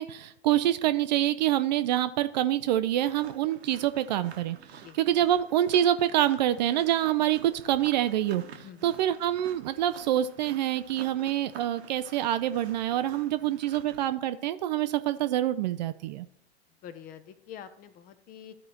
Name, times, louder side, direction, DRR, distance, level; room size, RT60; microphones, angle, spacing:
voice 1, 0.0-16.3, right 12 dB, 40° right, 12 dB, 0.4 m, -26 dB
sound 1, 2.9-14.0, right 6 dB, 70° right, 1.1 m, -50 dB
voice 2, 8.6-8.9 16.8-18.5, left 9 dB, 25° left, 12 dB, 0.6 m, -46 dB
13.0 x 4.8 x 2.9 m, 0.71 s
figure-of-eight pair, 95°, 34 cm